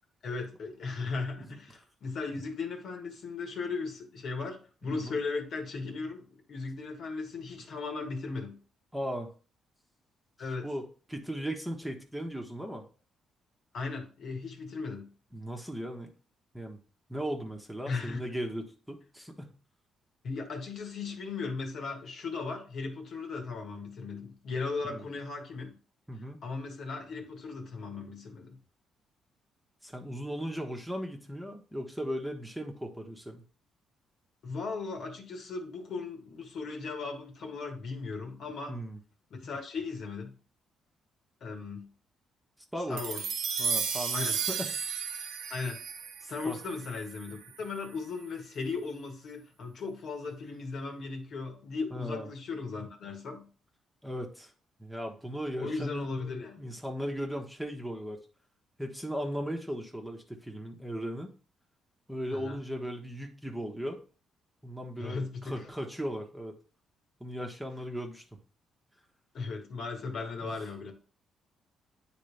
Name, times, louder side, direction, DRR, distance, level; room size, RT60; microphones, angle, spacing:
voice 1, 0.2-8.6 10.4-10.7 13.7-15.1 17.9-18.2 20.2-25.7 26.4-28.6 34.4-38.7 39.3-40.4 41.4-41.9 42.9-43.3 44.1-44.4 45.5-45.8 46.3-53.5 55.6-56.7 62.3-62.6 65.0-65.7 69.3-70.9, left 4 dB, 65° left, 3 dB, 1.5 m, -37 dB
voice 2, 8.9-9.3 10.6-12.8 15.3-16.1 16.5-16.8 17.1-19.5 24.8-25.1 26.1-26.4 29.8-33.4 38.7-39.0 42.7-43.0 43.6-44.7 46.2-46.6 51.9-52.3 54.0-54.5 54.8-56.1 56.6-58.2 58.8-61.3 62.1-64.0 64.6-66.6 67.2-68.2 70.4-70.6, equal, 5° right, 2 dB, 1.1 m, -37 dB
sound 1, 43.0-47.5, right 6 dB, 80° right, 0.8 m, -34 dB
9.2 x 3.3 x 3.3 m, 0.38 s
cardioid pair, 90°, 0 cm